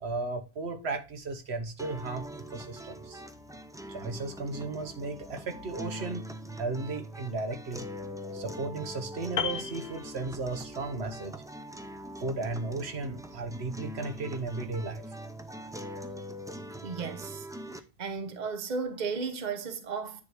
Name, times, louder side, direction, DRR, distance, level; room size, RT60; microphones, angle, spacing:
voice 1, 0.0-2.2 2.5-3.2 3.9-6.3 6.6-7.9 8.3-11.3 12.2-15.1, right 3 dB, 90° right, 1.4 m, -35 dB
sound 1, 1.8-17.8, equal, 5° right, 0.3 m, -42 dB
Piano, 9.4-10.8 11.1-11.3, left 7 dB, 55° left, 0.6 m, -35 dB
voice 2, 16.8-17.5 18.0-20.2, right 5 dB, 45° right, 1.0 m, -34 dB
9.7 x 3.5 x 4.6 m
omnidirectional pair, 1.1 m